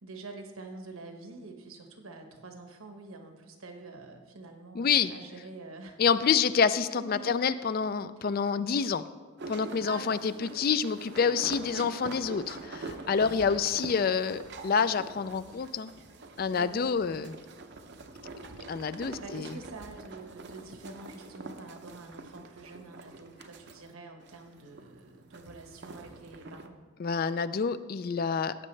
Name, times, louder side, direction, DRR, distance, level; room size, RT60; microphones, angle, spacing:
voice 1, 0.0-6.0 7.0-7.3 8.2-8.3 9.8-10.8 11.6-12.1 13.3-13.5 16.5-17.3 19.2-26.8, right 3 dB, 80° right, 4 dB, 1.2 m, -47 dB
voice 2, 4.8-5.1 6.0-9.0 9.5-15.9 16.4-17.3 18.7-19.5 27.0-28.6, left 6 dB, 45° left, 14 dB, 0.3 m, -27 dB
sound 1, 9.4-23.9 24.2-26.7, right 3 dB, 50° right, 0.6 m, -45 dB
15.5 x 8.4 x 3.2 m, 1.4 s
head